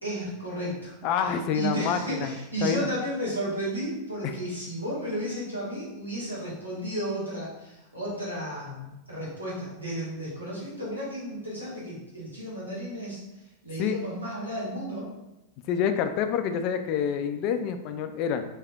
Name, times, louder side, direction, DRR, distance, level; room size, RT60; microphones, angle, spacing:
voice 1, 0.0-0.9 1.5-13.2 13.6-15.1, right 1 dB, 85° right, -8 dB, 1.5 m, -33 dB
voice 2, 1.0-2.3 2.6-2.9 4.2-4.3 13.8-14.0 15.7-18.4, left 7 dB, 40° left, 8 dB, 0.3 m, -27 dB
3.5 x 2.7 x 3.4 m, 0.94 s
figure-of-eight pair, 90°, 0 cm